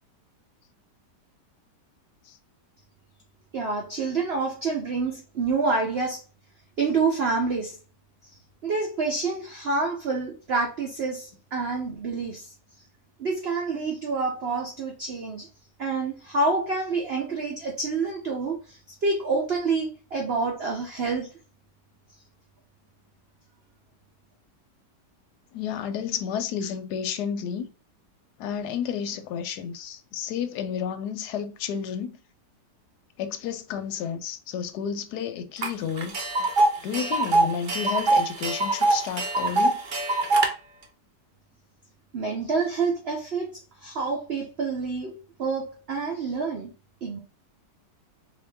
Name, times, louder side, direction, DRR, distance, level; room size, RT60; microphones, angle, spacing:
voice 1, 3.5-6.2 6.8-7.8 8.6-12.5 13.2-15.5 15.8-21.3 42.1-46.7 47.0-47.2, right 4 dB, 55° right, 0.7 m, -28 dB
voice 2, 25.5-27.7 28.4-32.2 33.2-36.5 36.8-39.8, left 8 dB, 75° left, 1.1 m, -31 dB
Tick, 35.6-35.7 36.0-40.5, right 2 dB, 85° right, 0.4 m, -23 dB
4.0 x 2.6 x 3.4 m
omnidirectional pair, 1.9 m